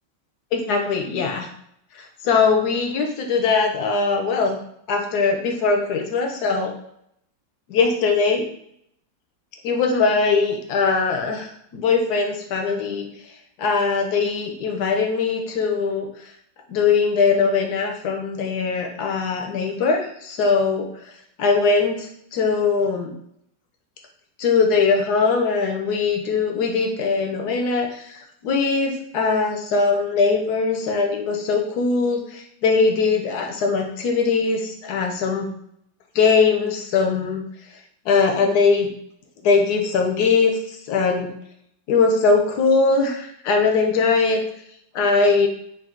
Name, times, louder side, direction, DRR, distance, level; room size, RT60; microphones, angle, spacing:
voice 1, 0.5-1.5 1.9-4.6 4.9-6.7 7.7-8.4 9.6-13.3 13.6-16.3 16.7-21.1 21.4-23.1 24.4-35.5 36.1-37.4 37.7-37.8 38.0-38.9 39.4-41.3 41.9-44.4 44.9-45.5, left 4 dB, 70° left, 3 dB, 1.0 m, -21 dB
4.1 x 2.4 x 3.6 m, 0.73 s
omnidirectional pair, 2.1 m